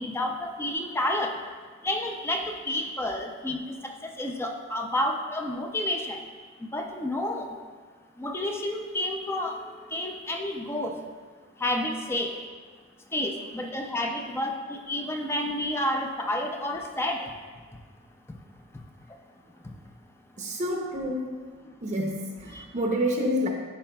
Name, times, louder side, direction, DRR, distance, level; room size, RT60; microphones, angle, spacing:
voice 1, 0.0-1.3 1.8-3.6 3.8-6.2 6.6-7.5 8.2-9.6 9.9-11.0 11.6-12.3 13.1-17.3 22.5-22.6, left 1 dB, 10° left, 2 dB, 0.4 m, -30 dB
voice 2, 20.4-21.4 21.8-23.5, equal, 35° right, -1 dB, 0.6 m, -28 dB
11.0 x 4.4 x 2.2 m, 1.5 s
head